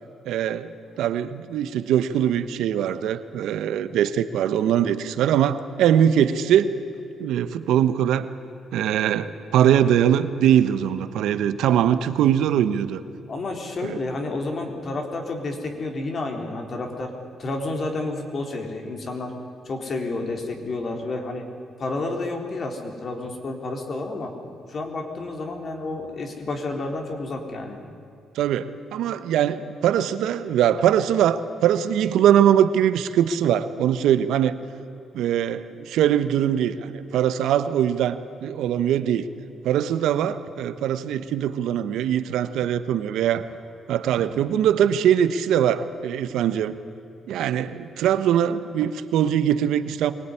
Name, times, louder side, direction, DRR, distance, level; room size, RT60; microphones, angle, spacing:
voice 1, 0.2-0.7 1.0-6.8 7.2-8.3 8.7-13.0 13.8-14.0 28.3-34.6 35.1-39.3 39.6-43.4 43.9-46.7 47.3-50.1, right 10 dB, 85° right, 12 dB, 1.1 m, -22 dB
voice 2, 13.3-17.1 17.4-19.3 19.6-21.4 21.8-24.3 24.7-27.8, left 2 dB, 45° left, 3 dB, 4.1 m, -30 dB
23.5 x 18.5 x 9.9 m, 2.8 s
cardioid pair, 90°, 0 cm